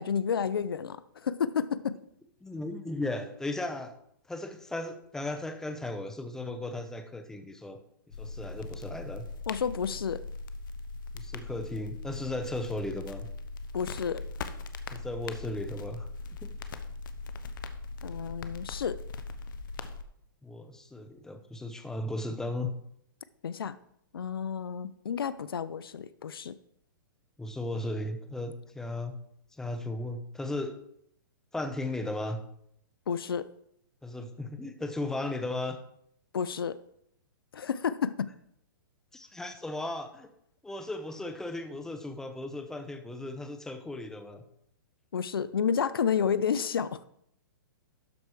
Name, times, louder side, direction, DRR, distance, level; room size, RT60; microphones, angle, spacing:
voice 1, 0.0-2.0 9.5-10.2 13.7-14.2 18.0-19.0 23.4-23.8 24.1-26.6 33.1-33.5 36.3-36.8 37.5-38.3 45.1-47.0, left 7 dB, 85° left, 16 dB, 0.5 m, -30 dB
voice 2, 2.4-3.9 4.3-7.8 8.2-9.2 11.1-13.3 14.9-16.1 16.4-16.5 20.4-22.7 27.4-29.2 29.6-30.8 31.5-32.4 34.0-35.8 39.1-40.3 40.6-44.4, left 2 dB, 5° left, 7 dB, 0.8 m, -36 dB
sound 1, 8.1-20.0, left 3 dB, 65° left, 0.8 m, -40 dB
12.0 x 4.6 x 4.8 m, 0.72 s
hypercardioid pair, 130°, 12 cm